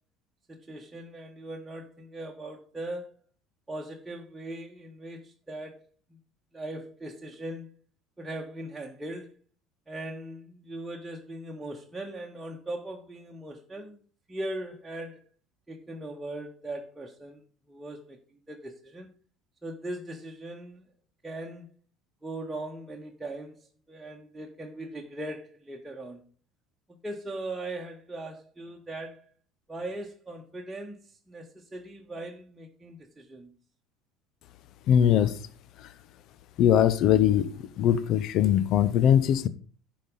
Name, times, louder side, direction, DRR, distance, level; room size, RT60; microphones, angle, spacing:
voice 1, 0.5-3.2 3.7-5.9 6.5-7.7 8.2-9.3 9.9-14.0 14.3-15.2 15.7-19.1 19.6-20.8 21.2-21.7 22.2-26.2 27.0-29.3 29.7-33.5, right 1 dB, 10° right, 1.5 m, -39 dB
voice 2, 34.9-35.4 36.6-39.5, left 10 dB, 55° left, 0.7 m, -21 dB
10.5 x 5.2 x 5.4 m
hypercardioid pair, 70°, 0 cm